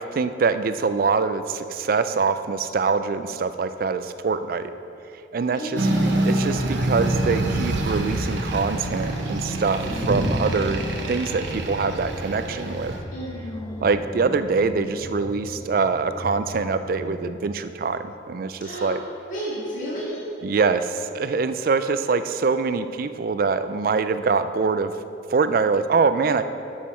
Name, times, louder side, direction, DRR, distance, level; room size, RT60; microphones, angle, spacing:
voice 1, 0.0-4.7 5.3-9.8 10.1-12.9 13.8-19.0 20.4-24.9 25.3-26.4, right 4 dB, 50° right, 11 dB, 0.3 m, -24 dB
voice 2, 5.6-6.5 13.1-13.8 18.6-19.0 19.3-20.2, equal, 40° left, -8 dB, 2.0 m, -32 dB
sound 1, 5.7-13.0, right 1 dB, 75° right, 0.9 m, -26 dB
sound 2, 9.8-17.3, equal, 15° left, 0.4 m, -36 dB
9.3 x 7.4 x 4.3 m, 2.8 s
head